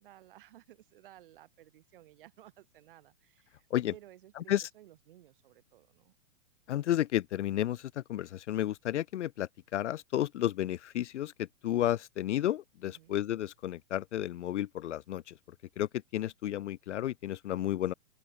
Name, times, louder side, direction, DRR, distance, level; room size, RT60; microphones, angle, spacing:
voice 1, 0.0-6.1 12.8-13.2, right 14 dB, 40° right, 4.3 m, -57 dB
voice 2, 6.7-15.4 15.8-17.9, left 12 dB, 60° left, 0.6 m, -32 dB
open air
hypercardioid pair, 180°, 39 cm